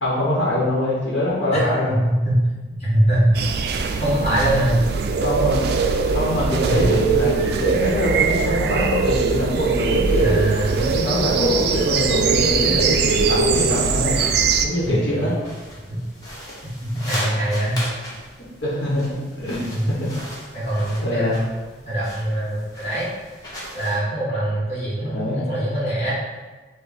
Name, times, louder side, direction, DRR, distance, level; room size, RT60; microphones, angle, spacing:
voice 1, 0.0-1.9 5.2-5.6 6.1-10.4 10.7-14.2 14.6-15.4 18.6-20.1 21.0-21.4 25.0-25.5, left 1 dB, 70° left, -7 dB, 1.0 m, -23 dB
voice 2, 1.5-2.4 2.7-3.4 4.0-4.8 6.6-6.9 10.2-10.8 14.8-14.9 15.9-16.0 16.8-17.8 19.7-19.9 20.5-21.4 21.8-23.1 23.7-26.1, right 1 dB, 35° left, -7 dB, 1.3 m, -22 dB
sound 1, 3.3-14.7, right 5 dB, 55° right, 0.3 m, -21 dB
sound 2, 12.9-24.0, equal, 20° left, 1.0 m, -37 dB
5.0 x 2.1 x 4.1 m, 1.3 s
head